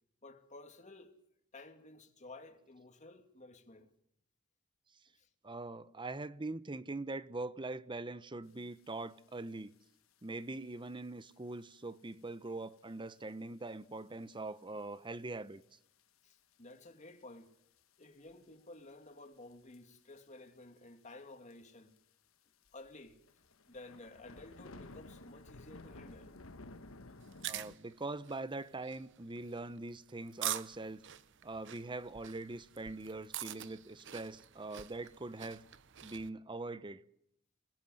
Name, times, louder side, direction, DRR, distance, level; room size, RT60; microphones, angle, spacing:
voice 1, 0.2-1.2 1.5-3.9 5.2-5.3 16.2-17.5 18.0-21.9 22.7-23.2 23.7-26.3 34.7-34.8, left 2 dB, 35° left, 2.6 m, -53 dB
voice 2, 5.4-9.7 10.2-15.6 27.4-31.0 31.4-35.7 36.0-37.0, right 2 dB, 25° right, 0.9 m, -42 dB
sound 1, 9.1-9.2 9.5-9.8 10.5-10.7 11.3-11.4 12.0-12.1 12.5-12.6 12.8-12.9 14.0-14.2 14.6-14.7 15.6-15.7 16.3-16.7 17.1-17.2 17.8-18.4 19.5-19.8 20.1-20.2 20.5-20.6 20.8-20.9 21.5-21.6 22.0-22.1 22.6-27.8, left 2 dB, 80° left, 1.4 m, -53 dB
sound 2, 27.2-36.3, right 12 dB, 60° right, 0.9 m, -45 dB
27.5 x 20.5 x 8.0 m
head